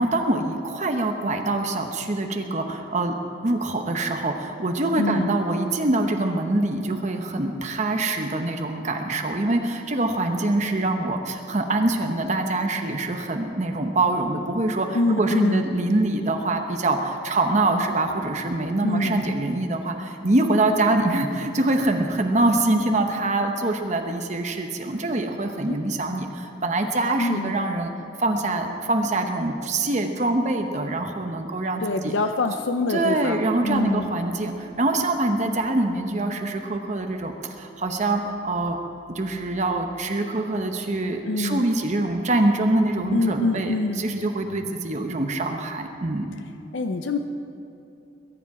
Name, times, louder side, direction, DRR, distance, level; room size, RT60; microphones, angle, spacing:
voice 1, 0.0-3.2 3.4-27.9 28.2-32.1 32.9-38.8 39.1-46.3, right 2 dB, 40° right, 4 dB, 0.9 m, -24 dB
voice 2, 5.0-5.3 14.9-15.7 18.8-19.2 25.7-25.8 27.2-27.6 31.8-34.1 41.2-41.6 43.1-44.0 46.7-47.2, left 2 dB, 85° left, 7 dB, 0.6 m, -25 dB
21.5 x 10.0 x 4.8 m, 2.9 s
head